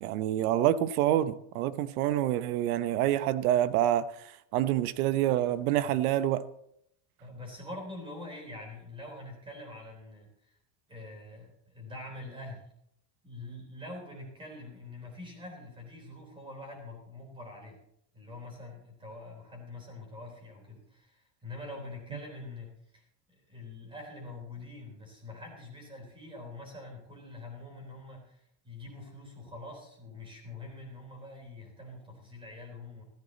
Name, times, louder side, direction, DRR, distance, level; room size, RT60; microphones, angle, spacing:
voice 1, 0.0-4.1 4.5-6.4, right 12 dB, 65° right, 14 dB, 1.0 m, -27 dB
voice 2, 7.2-10.6 10.9-12.7 13.2-17.8 18.1-33.0, left 2 dB, 10° right, 1 dB, 3.7 m, -45 dB
14.5 x 14.0 x 4.0 m, 0.73 s
cardioid pair, 175°, 47 cm